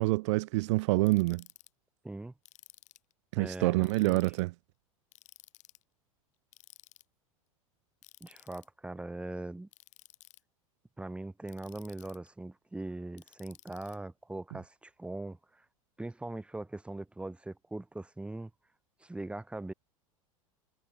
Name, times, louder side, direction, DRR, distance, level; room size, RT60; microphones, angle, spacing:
voice 1, 0.0-1.4 3.3-4.5, right 22 dB, 55° right, 0.4 m, -27 dB
Ratchet pawl, 1.1-1.7 2.4-3.1 3.8-4.4 5.1-5.8 6.5-7.0 8.0-8.7 9.7-10.4 11.5-12.3 13.2-14.0, left 16 dB, 40° left, 2.5 m, -56 dB
voice 2, 3.4-4.2 8.2-9.7 11.0-15.6 16.0-18.5 19.0-19.7, right 2 dB, 5° right, 1.5 m, -41 dB
figure-of-eight pair, 85°, 18 cm